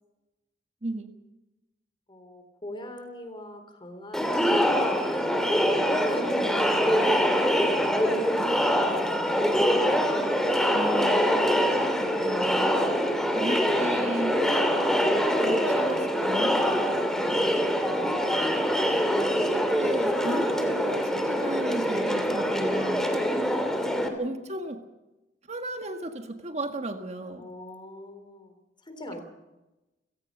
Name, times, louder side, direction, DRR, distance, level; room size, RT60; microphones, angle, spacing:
voice 1, 2.1-4.7 5.1-9.4 17.0-18.4 23.1-23.3 27.4-28.6 28.9-29.2, left 1 dB, 25° left, 7 dB, 3.5 m, -42 dB
Crowd, 4.1-24.1, equal, 5° left, 2.6 m, -24 dB
voice 2, 10.7-11.3 12.0-13.0 13.3-14.7 15.4-16.9 19.5-23.1 24.2-24.8 25.5-27.5, right 1 dB, 40° right, 6 dB, 1.7 m, -35 dB
30.0 x 17.0 x 5.5 m, 1.0 s
head